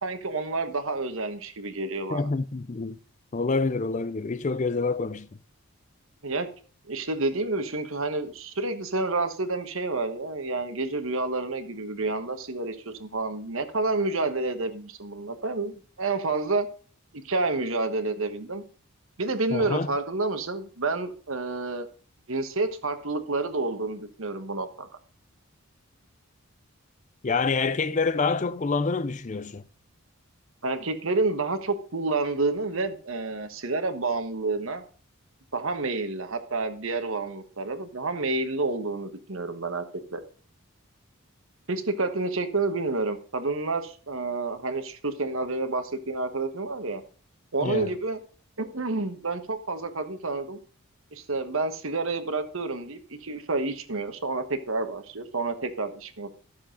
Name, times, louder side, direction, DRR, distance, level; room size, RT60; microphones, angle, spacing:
voice 1, 0.0-2.3 6.2-6.5 6.9-16.7 17.1-18.6 19.2-21.9 22.3-24.9 30.6-34.8 35.5-39.8 40.1-40.2 41.7-47.0 47.5-48.2 48.6-50.6 51.1-56.4, right 3 dB, 65° right, 1.3 m, -29 dB
voice 2, 2.1-3.0 3.3-5.3 19.5-19.9 27.2-29.6 47.6-47.9, left 4 dB, 35° left, 0.4 m, -27 dB
13.0 x 7.1 x 5.2 m
head